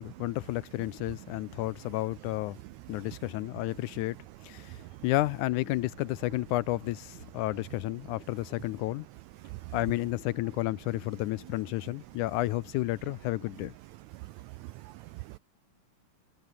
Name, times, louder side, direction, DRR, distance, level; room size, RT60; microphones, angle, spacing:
voice 1, 0.0-2.6 2.9-4.2 4.4-9.1 9.7-13.7, left 18 dB, 80° left, 1.9 m, -31 dB
voice 2, 14.1-15.4, right 20 dB, 90° right, 1.6 m, -43 dB
omnidirectional pair, 3.8 m